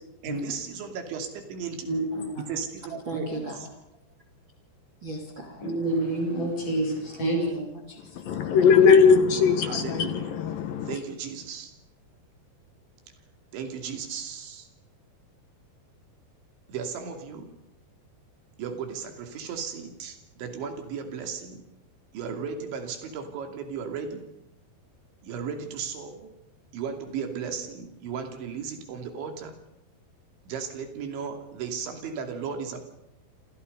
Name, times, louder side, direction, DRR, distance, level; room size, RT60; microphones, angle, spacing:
voice 1, 0.2-1.9 2.5-3.5 9.6-10.3 10.9-11.7 13.5-14.7 16.7-17.5 18.6-21.6 22.1-24.2 25.2-26.3 26.7-29.6 30.5-32.8, right 6 dB, 85° right, 5.2 m, -35 dB
voice 2, 1.9-2.4 5.6-7.4, right 2 dB, 45° left, 9.4 m, -28 dB
voice 3, 3.0-3.7 5.0-5.6 7.2-8.8, right 1 dB, 30° right, 3.3 m, -38 dB
voice 4, 8.2-11.0, left 6 dB, 70° left, 2.4 m, -20 dB
28.0 x 27.0 x 5.4 m
omnidirectional pair, 5.2 m